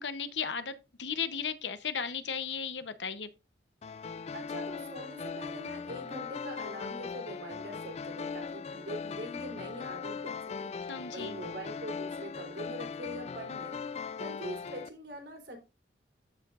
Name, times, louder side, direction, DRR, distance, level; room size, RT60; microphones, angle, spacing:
voice 1, 0.0-3.3 10.9-11.4, left 6 dB, 80° left, 0.8 m, -35 dB
sound 1, 3.8-14.9, left 5 dB, 35° left, 0.3 m, -39 dB
voice 2, 4.3-15.6, equal, 75° right, 3.1 m, -43 dB
14.0 x 4.7 x 2.4 m
head